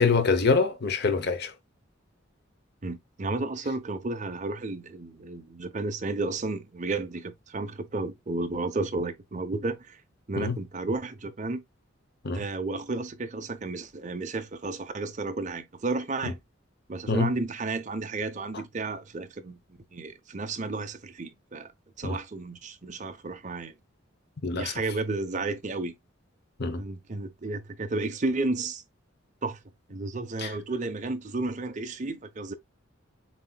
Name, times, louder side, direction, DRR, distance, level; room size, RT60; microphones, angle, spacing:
voice 1, 0.0-1.5 10.4-10.6 12.2-12.4 17.1-17.3 22.0-22.2 24.4-24.7 26.6-26.8 30.4-30.5, left 4 dB, 55° left, 0.8 m, -25 dB
voice 2, 2.8-10.0 10.3-11.6 12.3-16.4 16.9-19.6 19.9-21.7 22.0-23.8 24.5-26.0 26.8-28.8 29.4-29.6 29.9-32.5, right 3 dB, 40° right, 0.7 m, -32 dB
7.4 x 2.8 x 2.2 m
head